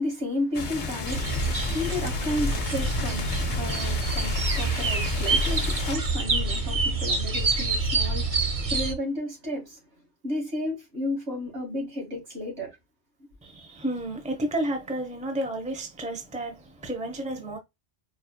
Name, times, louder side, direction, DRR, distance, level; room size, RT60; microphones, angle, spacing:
voice 1, 0.0-9.8 10.2-12.7, left 1 dB, 65° right, 2.4 m, -32 dB
sound 1, 0.5-6.0, left 5 dB, 45° left, 0.8 m, -33 dB
sound 2, 1.1-8.9, right 3 dB, 35° right, 0.7 m, -27 dB
voice 2, 13.4-17.6, right 1 dB, 5° right, 0.8 m, -31 dB
4.7 x 3.1 x 2.2 m
omnidirectional pair, 1.2 m